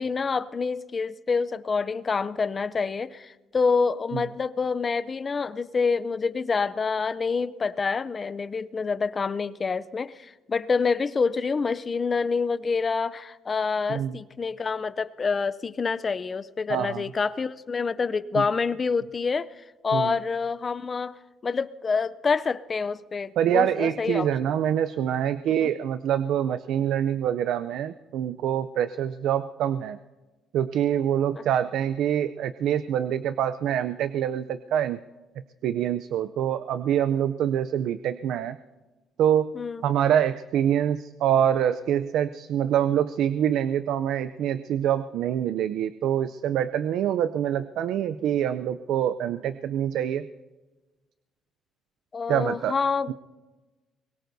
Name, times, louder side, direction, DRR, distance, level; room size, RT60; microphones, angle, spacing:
voice 1, 0.0-19.5 19.8-21.1 21.4-24.3 25.6-25.7 31.3-31.4 39.6-39.8 52.1-53.1, left 5 dB, 35° left, 0.5 m, -27 dB
voice 2, 16.7-17.0 18.3-18.5 19.9-20.2 23.4-30.0 30.5-35.0 35.6-38.6 39.2-39.5 39.8-50.3 52.3-52.7 53.1-53.2, right 10 dB, 75° right, 0.5 m, -25 dB
24.5 x 22.0 x 2.7 m
cardioid pair, 100°, 0 cm